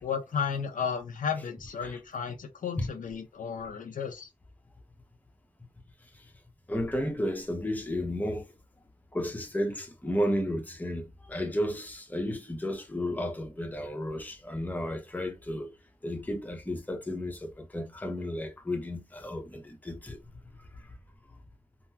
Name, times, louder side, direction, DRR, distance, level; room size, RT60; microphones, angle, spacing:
voice 1, 0.0-4.3, left 6 dB, 85° left, 0.7 m, -33 dB
voice 2, 6.7-8.5 9.1-15.7 16.0-20.2 20.7-20.9, equal, 10° left, 0.7 m, -33 dB
3.6 x 2.0 x 2.8 m
wide cardioid pair, 105°, 13 cm